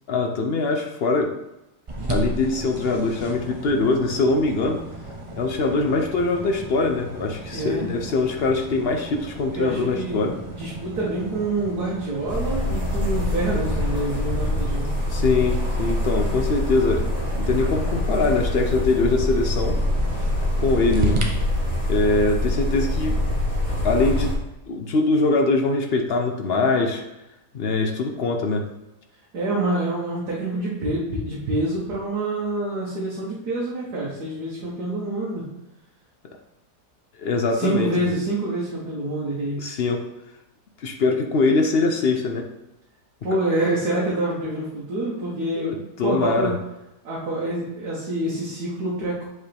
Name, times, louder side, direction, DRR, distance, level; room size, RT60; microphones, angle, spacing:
voice 1, 0.1-1.3 2.1-4.8 5.4-10.3 15.1-17.1 17.4-19.8 20.6-21.2 21.9-23.2 23.8-24.3 24.7-27.0 27.5-28.7 37.2-37.9 39.6-40.0 40.8-42.5 45.6-45.7 46.0-46.5, left 3 dB, 60° left, 4 dB, 0.6 m, -22 dB
sound 1, 1.9-21.2, right 1 dB, 30° right, 0.6 m, -35 dB
voice 2, 7.5-7.9 9.5-14.9 29.3-35.4 37.5-39.6 43.2-46.6 47.0-49.3, right 2 dB, 75° right, -6 dB, 1.8 m, -27 dB
sound 2, 12.3-24.3, left 1 dB, 25° left, 1.8 m, -25 dB
8.2 x 4.7 x 3.4 m, 0.93 s
omnidirectional pair, 1.7 m